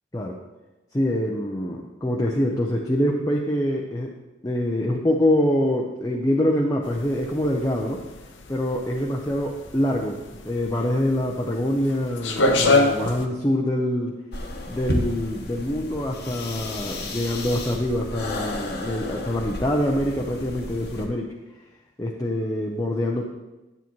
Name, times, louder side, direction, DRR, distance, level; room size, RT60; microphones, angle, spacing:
voice 1, 0.9-4.2 4.4-8.0 8.5-14.2 14.7-21.3 22.0-23.2, left 1 dB, 20° left, -1 dB, 0.6 m, -25 dB
sound 1, 6.8-13.2, left 2 dB, 80° left, 0.8 m, -24 dB
sound 2, 14.3-21.1, left 1 dB, 55° left, 1.1 m, -32 dB
9.5 x 8.7 x 3.1 m, 1.1 s
head